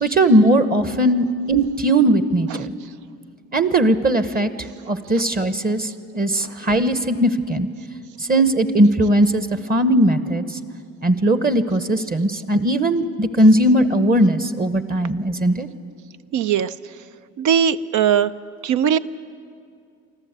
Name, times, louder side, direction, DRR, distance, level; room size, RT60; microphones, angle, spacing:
voice 1, 0.0-2.7 3.5-4.5 4.9-7.7 8.3-10.4 11.0-15.7, right 1 dB, 30° right, 11 dB, 1.0 m, -18 dB
voice 2, 16.3-16.7 17.4-18.3 18.6-19.0, right 8 dB, 75° right, 13 dB, 0.6 m, -19 dB
24.5 x 14.0 x 8.1 m, 2.3 s
cardioid pair, 90°, 30 cm